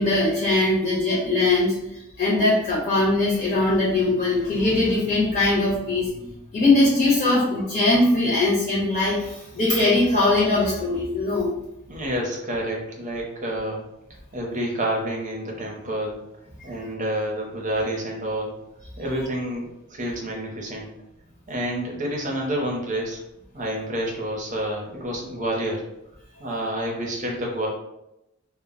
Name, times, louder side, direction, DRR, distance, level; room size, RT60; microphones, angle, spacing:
voice 1, 0.0-1.8 2.2-11.5, left 2 dB, 40° left, -7 dB, 0.9 m, -21 dB
voice 2, 11.9-13.9 14.3-16.2 16.6-18.5 19.0-20.9 21.5-23.2 23.5-25.8 26.4-27.7, right 1 dB, 40° right, -1 dB, 0.7 m, -28 dB
2.1 x 2.1 x 3.7 m, 0.87 s
head